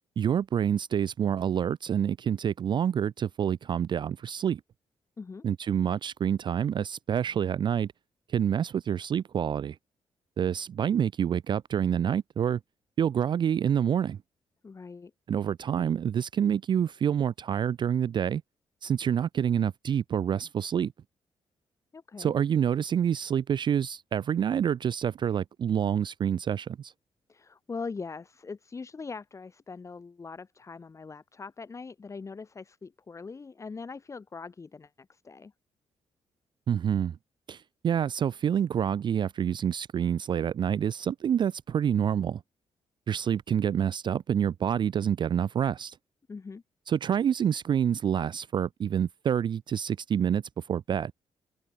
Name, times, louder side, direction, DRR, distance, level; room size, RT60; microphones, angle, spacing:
voice 1, 0.2-4.6 5.4-7.9 8.3-9.8 10.4-12.6 13.0-14.2 15.3-18.4 18.8-20.9 22.2-26.9 36.7-37.2 37.5-42.4 43.1-46.0 46.9-51.1, right 8 dB, 45° right, 0.4 m, -27 dB
voice 2, 14.6-15.1 21.9-22.3 27.3-35.5 46.3-46.6, left 4 dB, 25° left, 4.4 m, -41 dB
open air
wide cardioid pair, 155°, 11 cm